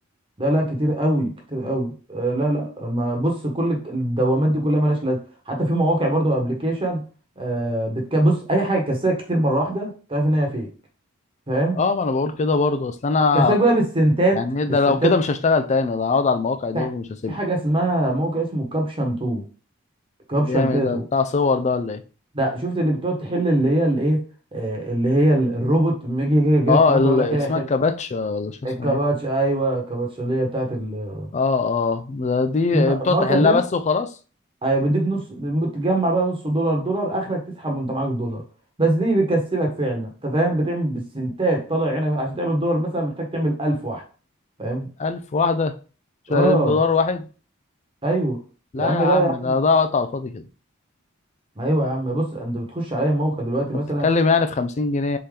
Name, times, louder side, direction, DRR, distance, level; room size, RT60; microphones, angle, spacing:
voice 1, 0.4-5.2 5.5-7.0 7.4-10.7 11.5-11.8 13.3-14.4 14.7-15.1 16.7-16.9 17.3-19.4 20.3-21.0 22.3-24.2 24.5-27.6 28.6-31.3 32.7-33.6 34.6-38.4 38.8-44.0 44.6-44.9 46.3-46.8 48.0-48.4 48.8-49.5 51.6-54.1, right 1 dB, 25° right, 1.2 m, -22 dB
voice 2, 11.8-13.5 14.4-17.4 20.5-22.0 26.7-29.0 31.3-34.1 45.0-45.7 46.3-47.3 48.7-50.4 54.0-55.2, left 4 dB, 35° left, 0.4 m, -21 dB
4.3 x 3.7 x 3.3 m
head